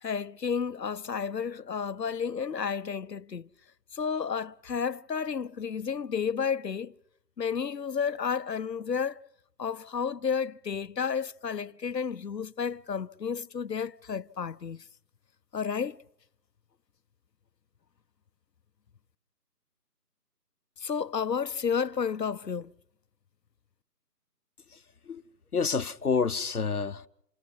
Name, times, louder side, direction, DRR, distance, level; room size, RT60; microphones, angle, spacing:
voice 1, 0.0-3.5 3.9-6.9 7.4-9.2 9.6-14.8 15.5-16.0 20.8-22.7, left 6 dB, 90° left, 0.9 m, -31 dB
voice 2, 24.7-25.2 25.5-27.1, left 5 dB, 65° left, 1.1 m, -29 dB
29.0 x 21.0 x 5.5 m
figure-of-eight pair, 170°, 48 cm